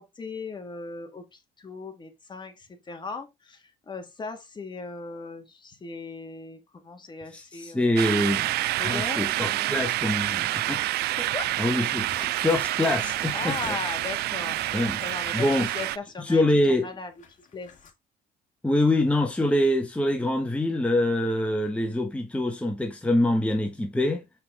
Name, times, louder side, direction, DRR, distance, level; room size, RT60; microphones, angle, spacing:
voice 1, 0.0-8.0 8.8-9.8 11.1-11.8 13.3-17.1 17.4-17.7, left 4 dB, 25° left, 1.8 m, -38 dB
voice 2, 7.3-8.5 8.8-10.8 11.6-12.1 12.4-13.8 14.7-15.0 15.3-15.7 16.2-16.9 18.6-24.2, left 1 dB, 5° left, 1.4 m, -25 dB
sound 1, 8.0-16.0, right 16 dB, 75° right, 0.4 m, -28 dB
sound 2, 11.9-15.9 16.2-16.3 17.2-17.9, left 6 dB, 50° left, 2.2 m, -47 dB
7.0 x 5.8 x 3.6 m
cardioid pair, 110°, 17 cm